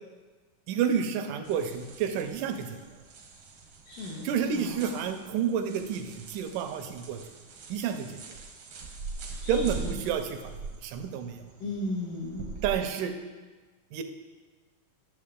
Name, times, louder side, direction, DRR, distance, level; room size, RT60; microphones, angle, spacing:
voice 1, 0.7-2.8 4.2-7.2 7.7-8.2 9.5-10.6 10.8-11.4 12.6-13.1 13.9-14.0, right 7 dB, 80° right, 7 dB, 2.2 m, -30 dB
sound 1, 1.4-12.7, right 4 dB, 65° right, 1.3 m, -43 dB
voice 2, 3.9-4.7 9.4-10.0 11.6-12.4, left 1 dB, 75° left, -8 dB, 3.0 m, -36 dB
11.5 x 7.2 x 3.7 m, 1.3 s
omnidirectional pair, 3.7 m